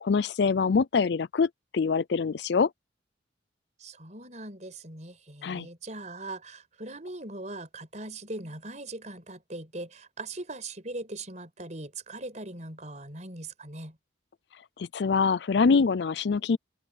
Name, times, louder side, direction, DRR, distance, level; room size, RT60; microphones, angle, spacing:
voice 1, 0.0-2.7 5.4-5.7 14.8-16.6, left 5 dB, 60° left, 0.4 m, -24 dB
voice 2, 3.8-14.0, right 2 dB, 40° right, 5.3 m, -40 dB
open air
head